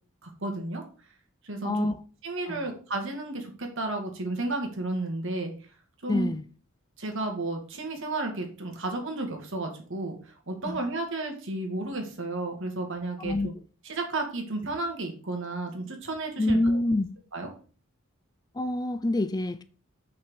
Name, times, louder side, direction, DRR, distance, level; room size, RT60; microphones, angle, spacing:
voice 1, 0.2-0.8 1.4-1.9 2.2-5.5 6.0-6.3 7.0-13.5 13.8-16.8 17.3-17.5, right 2 dB, 65° right, 2.4 m, -32 dB
voice 2, 1.6-1.9 2.5-2.7 6.1-6.4 10.7-10.8 13.2-13.5 16.4-17.1 18.5-19.6, left 2 dB, 20° left, 0.5 m, -26 dB
6.2 x 5.9 x 6.5 m
head